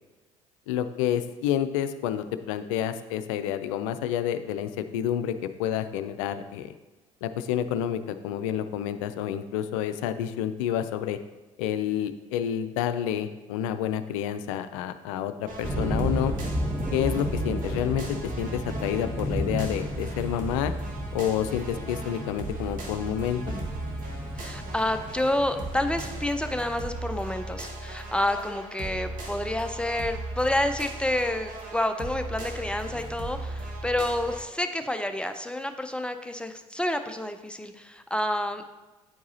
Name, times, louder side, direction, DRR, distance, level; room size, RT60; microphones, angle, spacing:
voice 1, 0.7-6.7 7.2-11.2 11.6-16.3 16.9-20.7 21.1-23.5, left 10 dB, 75° left, 10 dB, 0.4 m, -29 dB
sound 1, 15.4-34.4, right 2 dB, 55° right, 1.3 m, -37 dB
sound 2, 15.6-26.2, equal, 15° right, 0.8 m, -33 dB
voice 2, 24.3-38.7, left 1 dB, 5° left, 7 dB, 0.5 m, -29 dB
9.1 x 4.7 x 2.7 m, 1.1 s
hypercardioid pair, 55°, 17 cm